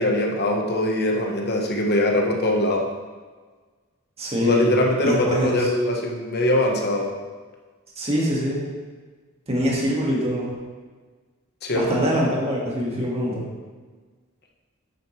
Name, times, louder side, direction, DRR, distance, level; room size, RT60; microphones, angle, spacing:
voice 1, 0.0-2.9 4.4-7.1 11.6-12.0, left 1 dB, 50° left, 1 dB, 1.3 m, -22 dB
voice 2, 4.2-5.7 8.0-8.7 9.5-10.5 11.7-13.4, equal, 30° right, -4 dB, 1.9 m, -24 dB
9.2 x 8.2 x 3.3 m, 1.4 s
head